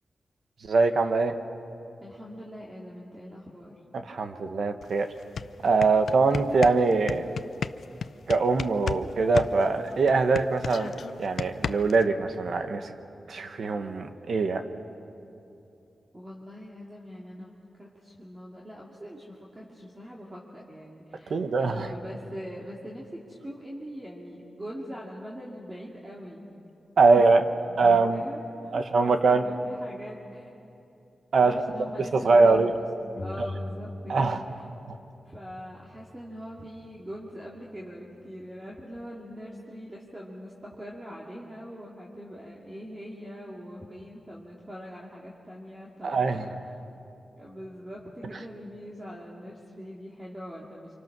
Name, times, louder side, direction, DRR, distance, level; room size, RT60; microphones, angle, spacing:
voice 1, 0.6-1.3 3.9-5.1 5.6-7.3 8.3-12.9 13.3-14.6 21.3-21.9 27.0-27.4 27.8-28.2 28.7-29.4 31.3-31.6 32.1-32.7 33.4-33.5 34.1-34.4 34.9-35.0 46.0-46.4, right 4 dB, 65° right, 7 dB, 1.4 m, -23 dB
voice 2, 2.0-3.8 16.1-26.5 27.0-30.5 31.4-32.8 33.2-34.4 35.2-46.6 47.4-50.9, equal, 20° right, -4 dB, 2.5 m, -42 dB
sound 1, 4.8-4.9 5.2-9.0 9.3-12.0, left 6 dB, 75° left, 0.5 m, -33 dB
sound 2, 33.2-34.7 34.9-36.7, left 2 dB, 20° left, 3.1 m, -41 dB
30.0 x 26.0 x 6.2 m, 2.8 s
wide cardioid pair, 150°, 0 cm